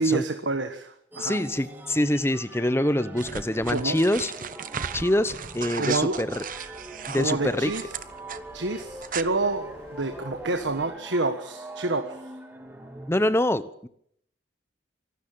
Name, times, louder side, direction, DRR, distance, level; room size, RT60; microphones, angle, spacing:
voice 1, 0.0-1.4 3.7-4.0 5.8-6.2 7.1-7.9 8.5-9.7 10.0-12.2, right 3 dB, 85° right, 7 dB, 1.5 m, -28 dB
sound 1, 1.1-13.1, right 1 dB, 10° right, 2.7 m, -43 dB
voice 2, 1.2-4.3 4.9-6.4 7.1-7.7 13.1-13.9, left 1 dB, 15° left, 14 dB, 0.9 m, -25 dB
sound 2, 3.2-8.4 8.8-9.2, right 7 dB, 45° right, 1.0 m, -36 dB
sound 3, 4.8-10.8, equal, 35° left, 7.1 m, -51 dB
25.0 x 12.5 x 8.8 m, 0.70 s
head